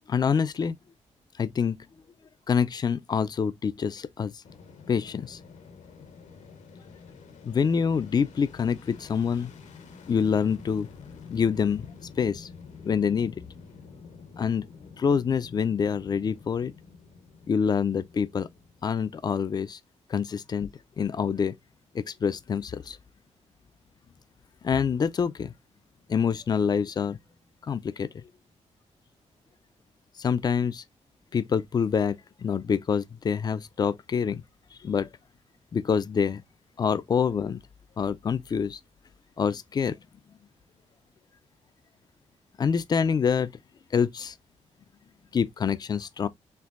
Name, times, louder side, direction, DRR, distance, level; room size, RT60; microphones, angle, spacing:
voice 1, 0.1-0.7 1.4-1.9 2.5-4.3 4.9-5.4 7.4-9.5 10.1-10.9 11.3-11.9 12.2-12.5 12.8-13.4 14.4-14.7 15.0-16.7 17.5-18.5 18.8-19.8 20.1-20.7 21.0-21.5 21.9-23.0 24.6-25.5 26.1-27.2 27.6-28.2 30.2-30.8 31.3-34.4 34.8-35.1 35.7-36.4 36.8-37.6 38.0-38.8 39.4-40.0 42.6-43.5 43.9-44.3 45.3-46.3, left 6 dB, 35° left, 0.3 m, -26 dB
Fixed-wing aircraft airplane, 4.4-19.6, left 5 dB, 70° left, 0.8 m, -48 dB
4.4 x 3.2 x 2.4 m
cardioid pair, 125°, 12 cm